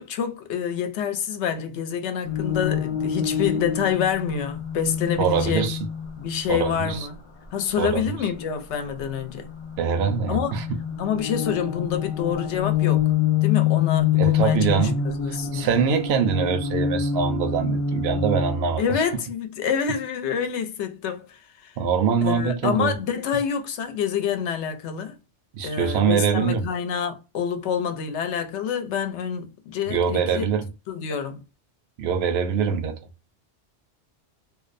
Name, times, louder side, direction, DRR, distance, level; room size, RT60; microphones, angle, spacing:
voice 1, 0.0-5.7 6.2-7.2 7.5-9.5 10.3-10.5 11.0-13.1 13.4-15.7 18.8-21.7 22.2-25.2 25.6-30.4 30.9-31.4, left 7 dB, 75° left, 0.9 m, -27 dB
sound 1, 2.2-6.4 9.5-18.7, left 8 dB, 55° left, 0.3 m, -26 dB
voice 2, 5.2-5.8 6.5-7.1 7.8-8.0 9.8-10.6 14.2-15.0 15.3-18.8 21.8-22.9 25.5-26.7 29.9-30.6 32.0-33.0, right 6 dB, 70° right, 0.8 m, -23 dB
2.6 x 2.0 x 2.4 m
omnidirectional pair, 1.2 m